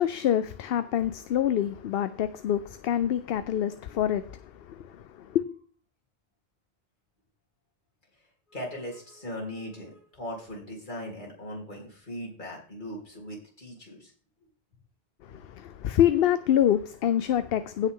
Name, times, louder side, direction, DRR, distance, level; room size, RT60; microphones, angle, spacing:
voice 1, 0.0-5.4 15.2-17.9, left 10 dB, 70° left, 0.8 m, -26 dB
voice 2, 8.5-14.1, equal, 50° left, 3.7 m, -39 dB
16.5 x 5.7 x 3.8 m
omnidirectional pair, 1.0 m